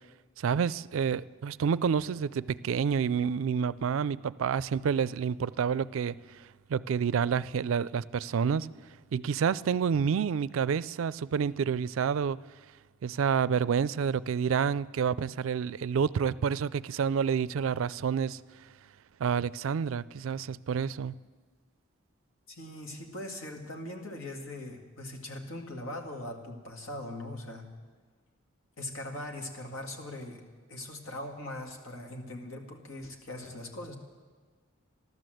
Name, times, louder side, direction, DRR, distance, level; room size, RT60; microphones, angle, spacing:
voice 1, 0.4-6.2 6.7-8.7 9.1-12.4 13.0-18.4 19.2-21.2, right 7 dB, 75° right, 0.3 m, -28 dB
voice 2, 22.5-27.7 28.8-30.4 30.7-34.0, left 1 dB, 80° left, 2.0 m, -40 dB
14.0 x 12.0 x 7.7 m
head